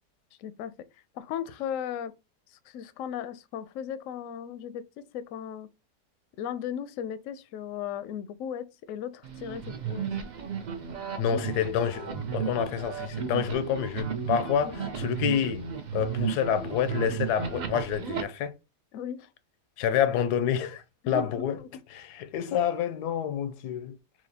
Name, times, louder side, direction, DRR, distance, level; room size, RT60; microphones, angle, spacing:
voice 1, 0.4-0.7 1.2-2.1 2.7-4.8 5.1-5.7 6.4-10.1 14.6-14.9 18.9-19.3 21.0-21.5, left 9 dB, 70° left, 0.8 m, -36 dB
sound 1, 9.2-18.2, right 7 dB, 65° right, 0.4 m, -34 dB
voice 2, 11.2-18.5 19.8-21.6 21.9-23.9, left 9 dB, 85° left, 1.1 m, -28 dB
5.9 x 2.5 x 2.7 m
omnidirectional pair, 1.7 m